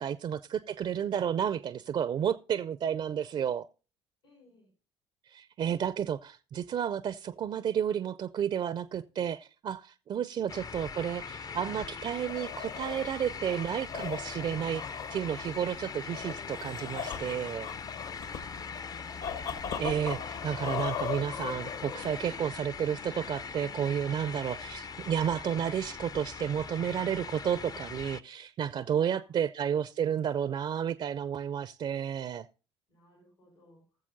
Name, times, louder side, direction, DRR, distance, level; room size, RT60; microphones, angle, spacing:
voice 1, 0.0-3.7 5.3-14.8 15.1-17.7 19.8-32.5, right 8 dB, 35° right, 0.4 m, -31 dB
voice 2, 4.2-4.7 10.1-10.3 18.1-18.3 28.8-29.3 32.9-33.8, left 2 dB, 85° left, 4.0 m, -61 dB
sound 1, 10.5-28.2, left 5 dB, 25° left, 0.4 m, -41 dB
sound 2, 12.0-22.4, left 8 dB, 65° left, 1.4 m, -39 dB
19.5 x 7.2 x 2.6 m
figure-of-eight pair, 55°, 14 cm